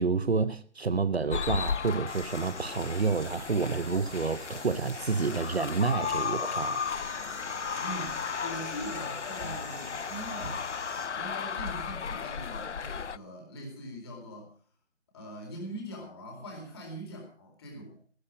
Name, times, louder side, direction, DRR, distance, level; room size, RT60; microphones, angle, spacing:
voice 1, 0.0-6.8, right 4 dB, 60° right, 0.9 m, -29 dB
sound 1, 1.3-13.2, left 6 dB, 80° left, 0.6 m, -35 dB
sound 2, 2.1-11.1, right 3 dB, 15° right, 1.5 m, -46 dB
voice 2, 7.7-10.7 11.1-14.5 15.1-18.0, equal, 20° left, 4.2 m, -42 dB
15.0 x 13.5 x 5.0 m
figure-of-eight pair, 160°, 35 cm